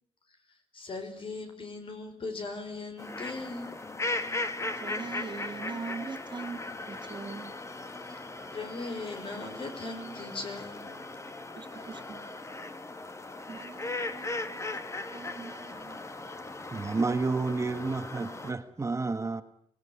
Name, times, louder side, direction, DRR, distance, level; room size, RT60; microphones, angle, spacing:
voice 1, 0.7-3.7 8.1-8.3 8.5-10.9, left 3 dB, 65° left, 4.9 m, -39 dB
sound 1, 3.0-18.5, left 2 dB, 30° left, 1.7 m, -38 dB
voice 2, 4.8-6.6 6.9-7.5 11.6-12.2 13.5-14.8 15.1-16.0, right 5 dB, 50° right, 2.2 m, -42 dB
voice 3, 16.7-19.4, right 3 dB, 30° right, 1.3 m, -30 dB
26.0 x 19.5 x 9.9 m
wide cardioid pair, 155°, 10 cm